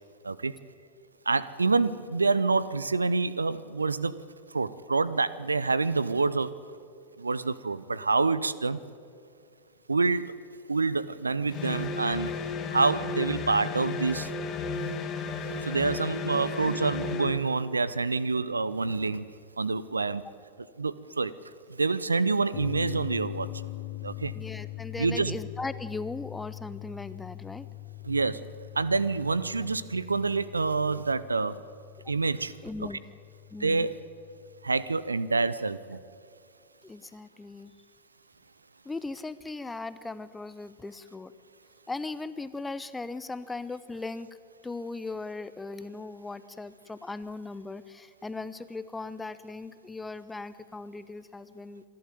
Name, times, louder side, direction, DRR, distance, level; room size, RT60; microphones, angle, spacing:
voice 1, 1.3-4.2 4.5-6.5 7.2-8.8 9.9-10.3 10.7-12.3 12.7-14.3 15.6-19.3 19.6-20.2 20.8-21.3 21.7-23.5 24.0-24.3 25.0-25.4 28.0-28.5 28.8-31.6 32.1-32.6 33.6-34.0 34.6-36.0, right 4 dB, 80° right, 18 dB, 0.6 m, -27 dB
sound 1, 11.5-17.4, left 4 dB, 30° left, 1.8 m, -33 dB
downward gongs, 22.5-35.5, left 20 dB, 50° left, 0.7 m, -42 dB
voice 2, 24.3-27.7 32.6-33.0 33.5-33.9 36.8-37.7 38.8-41.3 41.9-44.3 44.6-51.8, left 3 dB, 10° left, 14 dB, 0.8 m, -38 dB
26.0 x 11.5 x 9.1 m, 2.3 s
figure-of-eight pair, 90°, 0 cm